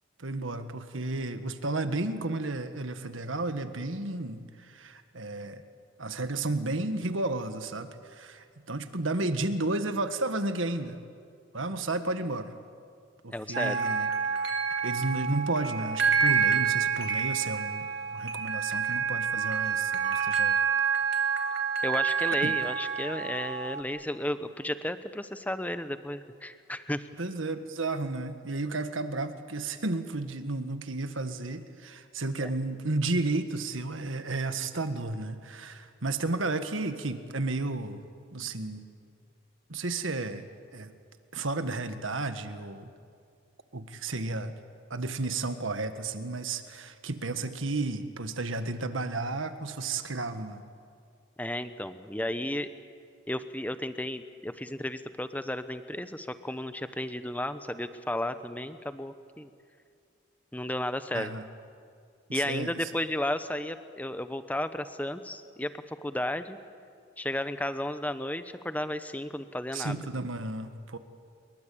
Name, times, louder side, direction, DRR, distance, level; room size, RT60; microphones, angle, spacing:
voice 1, 0.2-5.6 6.0-11.0 11.5-12.5 13.2-14.1 14.8-20.6 22.4-22.6 27.2-38.0 38.3-38.8 39.7-40.4 40.7-40.9 41.3-42.9 43.7-44.5 44.9-50.6 61.1-61.4 62.3-62.9 69.7-71.0, right 2 dB, 80° right, 9 dB, 1.6 m, -32 dB
voice 2, 13.3-13.8 21.8-27.1 32.4-32.5 51.4-52.7 53.3-59.5 60.5-61.3 62.3-66.6 67.2-70.0, left 1 dB, 10° left, 11 dB, 0.9 m, -33 dB
sound 1, 13.5-23.8, right 6 dB, 55° right, 3.0 m, -28 dB
28.5 x 22.5 x 8.6 m, 2.3 s
head